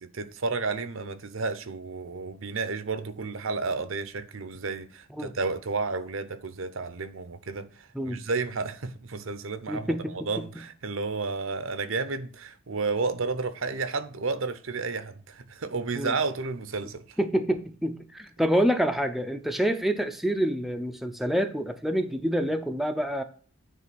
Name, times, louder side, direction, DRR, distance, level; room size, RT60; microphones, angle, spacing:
voice 1, 0.0-17.2, right 4 dB, 65° right, 0.8 m, -32 dB
voice 2, 9.7-10.5 15.9-16.1 17.2-23.2, equal, ahead, 0.5 m, -27 dB
9.3 x 3.3 x 5.9 m
head